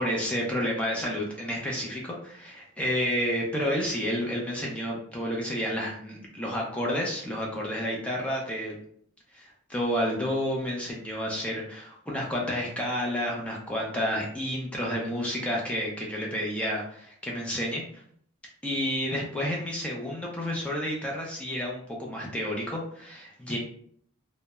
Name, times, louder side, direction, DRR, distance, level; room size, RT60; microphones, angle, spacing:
voice 1, 0.0-8.8 9.3-17.8 18.6-23.6, equal, 5° left, -3 dB, 0.5 m, -30 dB
2.3 x 2.0 x 2.9 m, 0.63 s
head